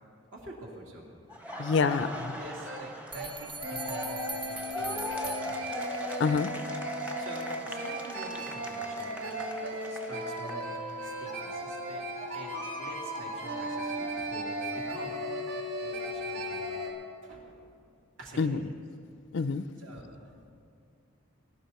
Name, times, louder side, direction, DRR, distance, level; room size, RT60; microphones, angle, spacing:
voice 1, 0.3-1.1 2.0-5.6 7.2-9.3 9.9-12.1 12.3-15.2 15.8-16.7 17.2-17.6 18.2-18.6 19.8-20.4, right 1 dB, 70° right, -2 dB, 2.7 m, -47 dB
Laughter, 1.3-11.1 11.5-13.5, left 1 dB, 5° right, 0.8 m, -41 dB
voice 2, 1.6-2.1 6.2-6.5 18.4-18.7 19.3-19.6, left 5 dB, 60° left, 14 dB, 0.4 m, -26 dB
sound 1, 2.3-2.4 2.6-2.8 3.1-3.3 3.6-16.9, right 1 dB, 90° right, 2.5 m, -36 dB
sound 2, 3.1-6.2, right 4 dB, 25° right, 0.4 m, -42 dB
20.0 x 11.5 x 4.3 m, 2.3 s
head